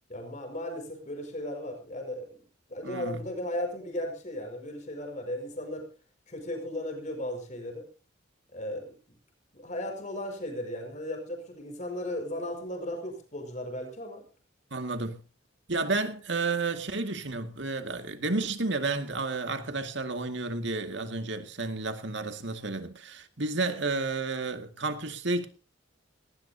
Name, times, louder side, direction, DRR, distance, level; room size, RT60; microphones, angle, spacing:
voice 1, 0.1-5.9 6.3-7.8 8.5-9.2 9.5-14.3, left 1 dB, 35° left, 5.4 m, -36 dB
voice 2, 2.8-3.2 14.7-15.2 15.7-25.5, right 3 dB, 60° right, 2.2 m, -31 dB
18.5 x 18.5 x 2.8 m
head